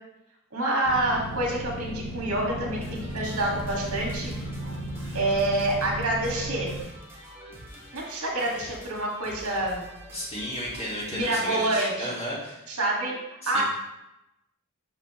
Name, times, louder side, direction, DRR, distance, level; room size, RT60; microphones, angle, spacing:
voice 1, 0.5-4.3 5.1-6.7 7.9-9.9 11.1-12.1 12.7-13.6, right 1 dB, 90° right, -2 dB, 1.7 m, -27 dB
sound 1, 0.8-6.8, equal, 90° left, 1.2 m, -35 dB
sound 2, 2.7-12.2, equal, 10° right, 1.1 m, -46 dB
voice 2, 10.1-12.7 13.4-13.6, equal, 30° left, -5 dB, 1.8 m, -33 dB
5.9 x 5.7 x 3.0 m, 0.91 s
head